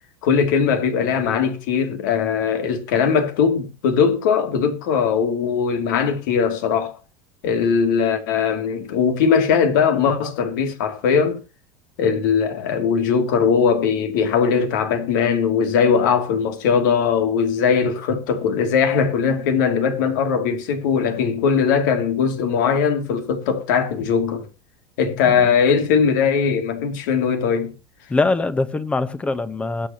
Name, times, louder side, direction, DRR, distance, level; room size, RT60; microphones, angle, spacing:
voice 1, 0.2-7.0 7.4-11.4 12.0-24.5 25.0-27.7, left 6 dB, 75° left, 2.8 m, -20 dB
voice 2, 28.1-29.9, left 3 dB, 10° left, 1.0 m, -22 dB
21.5 x 8.4 x 3.0 m
supercardioid pair, 145°, 10 cm